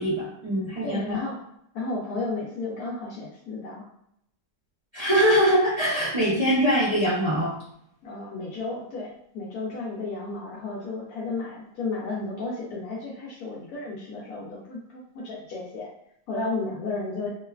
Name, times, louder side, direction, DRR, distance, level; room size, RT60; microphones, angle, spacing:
voice 1, 0.0-1.2 4.9-7.5, equal, 60° right, -11 dB, 0.3 m, -22 dB
voice 2, 0.8-1.4 1.7-3.9 8.0-15.9 16.3-17.3, left 3 dB, 70° left, -6 dB, 0.9 m, -33 dB
3.0 x 2.1 x 2.3 m, 0.72 s
omnidirectional pair, 2.0 m